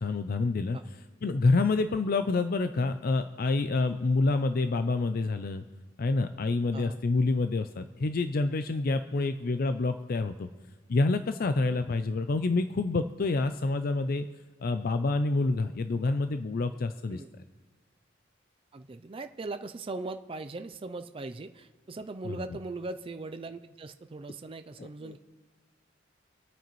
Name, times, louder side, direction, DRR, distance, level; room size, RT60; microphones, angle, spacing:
voice 1, 0.0-0.8 1.2-5.6 6.0-10.5 10.9-14.3 14.6-17.2 22.2-22.4 24.8-25.2, left 3 dB, 50° left, 9 dB, 0.5 m, -27 dB
voice 2, 18.7-25.2, right 3 dB, 30° right, 8 dB, 0.4 m, -40 dB
26.5 x 9.1 x 3.1 m, 1.3 s
head